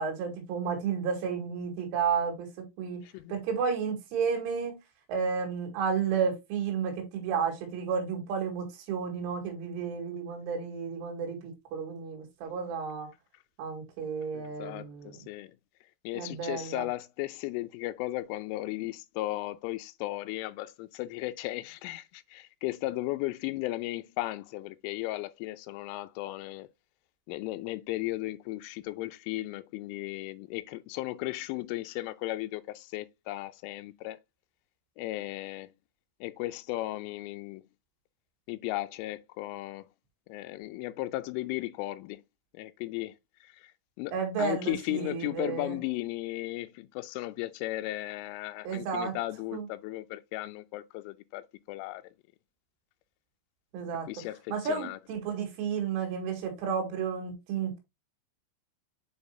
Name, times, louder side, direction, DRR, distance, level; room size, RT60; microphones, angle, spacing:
voice 1, 0.0-2.5 2.8-3.0 3.3-4.7 5.1-13.1 13.6-15.2 16.1-16.9 44.1-45.8 48.7-49.1 49.5-49.6 53.7-54.1 54.5-57.8, right 6 dB, 80° right, 4.4 m, -32 dB
voice 2, 3.0-3.3 14.3-15.6 16.0-26.7 27.3-34.2 35.0-35.7 36.2-37.7 38.5-39.9 40.3-42.2 42.5-43.1 43.4-43.7 44.0-52.0 54.1-55.0, left 18 dB, 90° left, 3.1 m, -36 dB
8.8 x 4.2 x 2.6 m
omnidirectional pair, 5.6 m